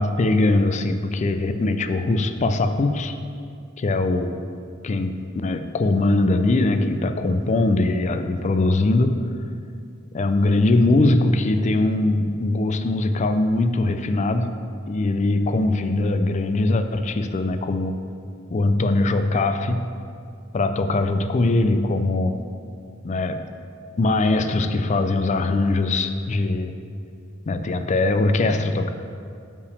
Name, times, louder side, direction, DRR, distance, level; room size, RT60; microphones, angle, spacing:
voice 1, 0.0-3.2 3.8-4.4 4.8-9.2 10.1-14.5 14.9-18.0 18.5-19.9 20.5-22.4 23.0-23.4 24.0-26.7 27.5-28.9, left 2 dB, 35° left, 9 dB, 0.4 m, -21 dB
5.5 x 5.0 x 6.5 m, 2.4 s
head